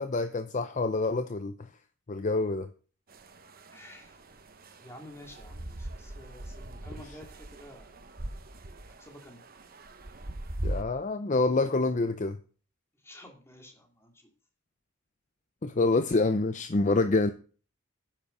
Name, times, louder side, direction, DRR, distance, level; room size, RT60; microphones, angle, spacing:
voice 1, 0.0-1.5 2.1-2.7 10.6-12.4 15.6-17.3, left 3 dB, 35° left, 10 dB, 0.6 m, -26 dB
sound 1, 3.1-10.8, right 1 dB, 45° right, 1.1 m, -41 dB
voice 2, 3.7-4.4 4.8-8.0 8.9-9.4 12.9-14.3, left 1 dB, 10° left, 3 dB, 2.5 m, -50 dB
10.0 x 7.3 x 6.7 m, 0.40 s
head